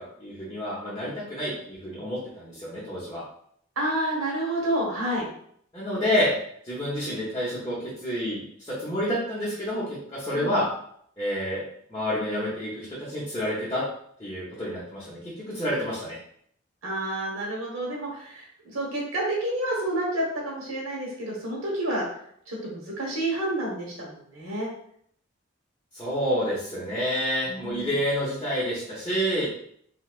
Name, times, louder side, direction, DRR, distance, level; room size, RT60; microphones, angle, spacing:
voice 1, 0.2-3.2 5.7-6.3 6.6-7.8 8.0-10.7 11.2-11.6 11.9-13.8 14.2-16.2 25.9-29.5, equal, 20° left, -8 dB, 0.7 m, -28 dB
voice 2, 3.8-5.3 10.3-10.6 16.8-22.1 22.5-24.7 27.4-27.9, right 1 dB, 80° right, -3 dB, 1.2 m, -29 dB
3.1 x 2.7 x 2.4 m, 0.65 s
head